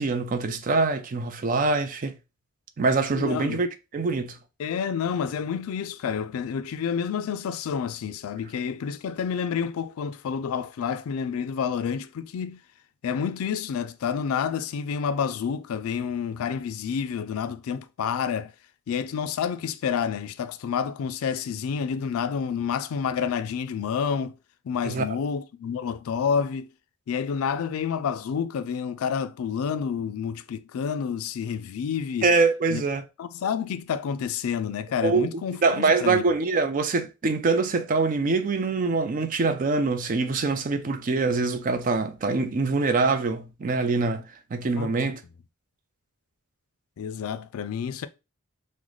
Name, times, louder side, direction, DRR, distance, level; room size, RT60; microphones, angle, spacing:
voice 1, 0.0-2.2 2.8-3.7 3.9-4.4 24.8-25.2 32.2-33.0 35.0-44.2 44.5-45.2, right 3 dB, 40° right, 0.4 m, -24 dB
voice 2, 3.1-3.6 4.6-12.6 13.0-18.5 18.9-24.3 24.6-26.7 27.1-32.3 32.7-32.8 33.2-36.2 44.8-44.9 47.0-48.1, left 7 dB, 80° left, 0.3 m, -29 dB
3.8 x 2.1 x 3.1 m
head